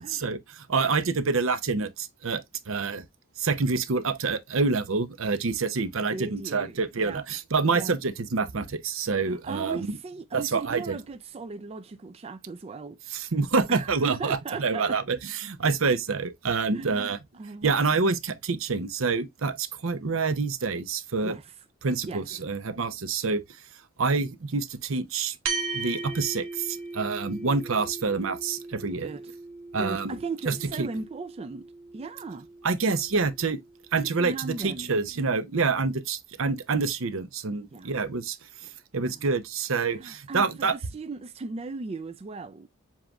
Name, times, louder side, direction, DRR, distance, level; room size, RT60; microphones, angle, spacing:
voice 1, 0.2-3.0 3.4-10.0 10.3-11.0 13.1-17.2 17.6-21.3 21.8-23.4 24.0-25.4 25.7-29.1 29.7-30.2 30.5-30.9 32.6-33.6 33.9-40.7, right 4 dB, 75° right, 0.7 m, -27 dB
voice 2, 6.1-6.8 7.0-7.2 7.7-8.0 9.2-13.3 13.7-15.0 16.7-17.7 21.2-21.5 22.0-22.2 29.0-29.3 29.7-31.7 31.9-32.5 34.0-34.9 37.7-37.9 39.0-39.3 39.9-42.7, right 4 dB, 30° right, 0.3 m, -37 dB
sound 1, 25.5-34.1, right 3 dB, 90° right, 1.3 m, -38 dB
7.4 x 3.0 x 2.3 m
head